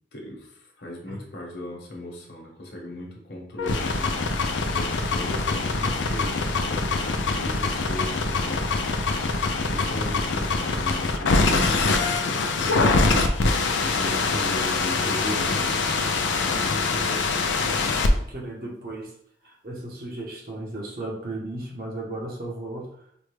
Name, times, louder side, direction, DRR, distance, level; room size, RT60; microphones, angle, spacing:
voice 1, 0.1-4.2 4.7-9.2 9.5-11.9 13.8-16.1, left 1 dB, 65° left, -1 dB, 1.1 m, -38 dB
sound 1, 3.6-18.1, left 3 dB, 85° left, 0.5 m, -24 dB
voice 2, 16.9-19.1 19.4-23.1, right 2 dB, 50° right, -2 dB, 0.9 m, -36 dB
4.9 x 2.2 x 3.2 m, 0.67 s
head